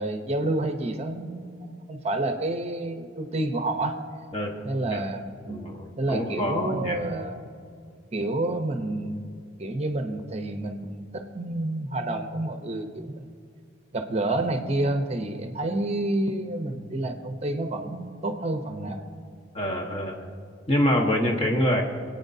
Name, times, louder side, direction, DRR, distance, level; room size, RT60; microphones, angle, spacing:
voice 1, 0.0-1.6 1.9-4.0 4.6-5.7 6.0-7.4 8.1-9.3 9.6-13.3 13.9-19.0, right 2 dB, 35° right, 6 dB, 0.7 m, -29 dB
voice 2, 5.4-7.0 19.5-20.1 20.7-21.8, left 1 dB, 30° left, 0 dB, 1.3 m, -25 dB
24.5 x 9.0 x 2.7 m, 2.2 s
head